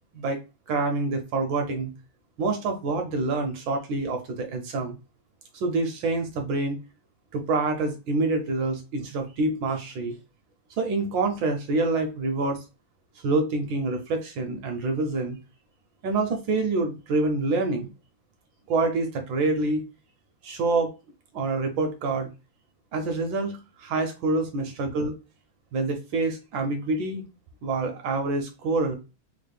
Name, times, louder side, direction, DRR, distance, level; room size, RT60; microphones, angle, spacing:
voice 1, 0.7-1.9 2.4-4.9 5.5-6.8 7.3-10.1 10.8-12.6 13.2-15.4 16.0-17.9 18.7-19.8 20.4-20.9 21.3-22.3 22.9-25.1 25.7-27.2 27.6-29.0, right 3 dB, 75° right, 5 dB, 1.2 m, -26 dB
4.4 x 2.0 x 3.3 m, 0.29 s
omnidirectional pair, 2.4 m